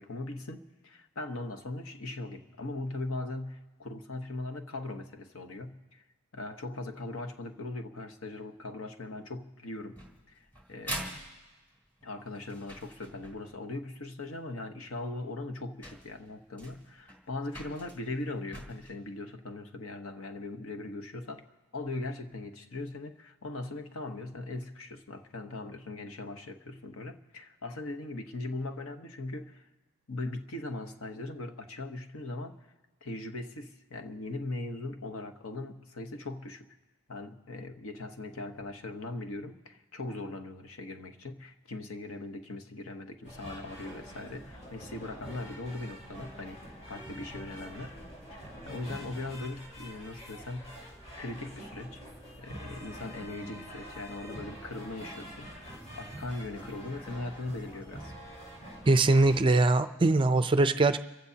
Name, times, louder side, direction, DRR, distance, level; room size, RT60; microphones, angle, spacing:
voice 1, 0.0-6.0 6.3-10.0 10.3-11.2 12.0-21.5 21.7-29.7 30.1-32.6 33.0-36.7 37.1-46.6 46.9-48.0 48.3-52.0 52.4-58.1, left 2 dB, 70° left, 6 dB, 1.1 m, -40 dB
sound 1, 10.0-13.6 14.9-15.0 15.5-15.6 15.8-18.9, right 1 dB, 10° left, 2.6 m, -44 dB
sound 2, 43.2-59.6, equal, 30° left, 5.3 m, -46 dB
voice 2, 58.9-61.0, right 2 dB, 20° right, 10 dB, 0.4 m, -22 dB
29.5 x 15.5 x 2.8 m, 1.2 s
head